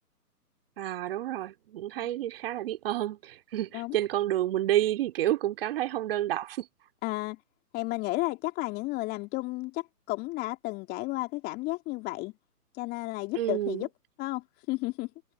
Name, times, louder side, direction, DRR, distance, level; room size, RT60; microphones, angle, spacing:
voice 1, 0.8-6.7 13.3-13.9, right 13 dB, 35° right, 2.4 m, -29 dB
voice 2, 7.0-7.4 7.7-12.3 12.7-13.9 14.2-15.1, left 21 dB, 20° left, 2.9 m, -33 dB
figure-of-eight pair, 140°, 48 cm